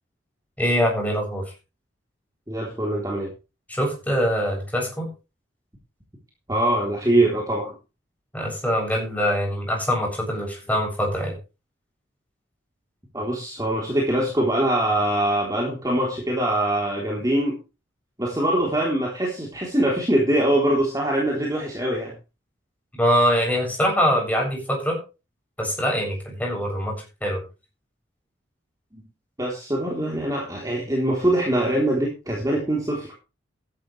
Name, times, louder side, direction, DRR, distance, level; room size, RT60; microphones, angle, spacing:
voice 1, 0.6-1.4 3.7-5.1 8.3-11.3 23.0-25.0 25.6-26.9 27.2-27.4, equal, 10° left, -1 dB, 7.9 m, -23 dB
voice 2, 2.5-3.3 6.5-7.7 13.1-17.6 18.2-22.1 28.9-29.0 29.4-33.1, right 1 dB, 20° right, -3 dB, 3.7 m, -23 dB
15.0 x 11.5 x 3.4 m, 0.30 s
head